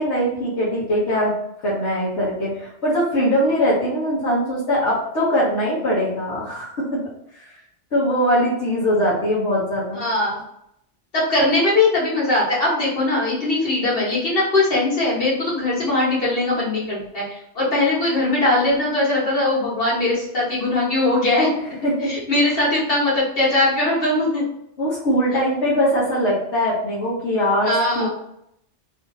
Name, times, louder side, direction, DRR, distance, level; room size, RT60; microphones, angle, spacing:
voice 1, 0.0-1.3 1.6-7.0 7.9-10.0 21.5-22.1 22.5-22.6 24.8-28.1, equal, 70° left, -9 dB, 1.6 m, -21 dB
voice 2, 9.9-10.4 11.1-21.5 22.0-24.4 27.6-28.1, left 2 dB, 55° left, -7 dB, 1.9 m, -20 dB
3.3 x 2.8 x 4.0 m, 0.74 s
omnidirectional pair, 1.2 m